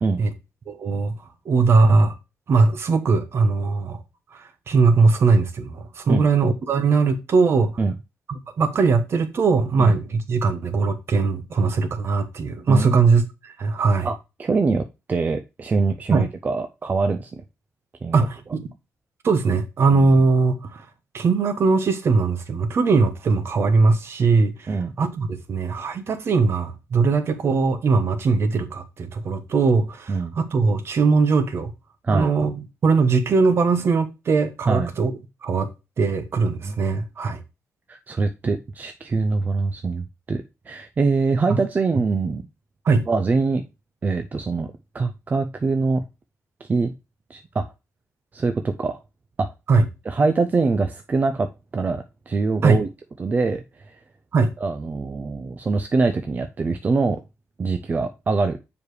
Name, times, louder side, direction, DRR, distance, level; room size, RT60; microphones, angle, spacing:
voice 1, 0.7-1.2 1.4-2.2 2.5-4.0 4.3-7.8 8.3-14.1 16.1-16.3 18.1-18.7 19.2-20.9 21.1-31.7 32.1-35.1 35.4-35.7 36.0-37.4 41.5-41.6 42.8-43.0 49.7-49.9 52.6-52.8 54.3-54.5, right 4 dB, 50° right, 1.0 m, -20 dB
voice 2, 12.7-13.0 14.0-17.3 18.0-18.3 24.7-24.9 30.1-30.4 32.0-32.3 34.7-34.9 36.6-36.7 37.9-42.4 43.1-43.6 44.0-46.0 46.6-46.9 47.3-47.7 48.3-49.0 49.4-49.5 50.1-52.9 53.2-54.0 54.6-57.2 57.6-58.6, right 4 dB, 30° right, 0.5 m, -24 dB
7.1 x 4.9 x 3.2 m
cardioid pair, 120°, 5 cm